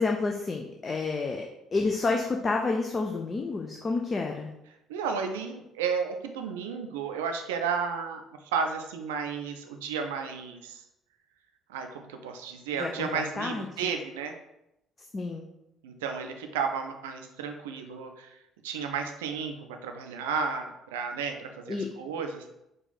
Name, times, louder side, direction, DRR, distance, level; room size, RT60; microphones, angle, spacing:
voice 1, 0.0-1.5 1.7-4.5 12.8-13.9 15.1-15.5 21.7-21.9, left 3 dB, 30° left, 2 dB, 0.5 m, -29 dB
voice 2, 4.9-8.2 8.5-10.8 11.7-14.3 15.8-18.4 18.6-22.5, right 6 dB, 70° right, 5 dB, 0.4 m, -33 dB
4.8 x 2.4 x 3.9 m, 0.85 s
figure-of-eight pair, 50°, 0 cm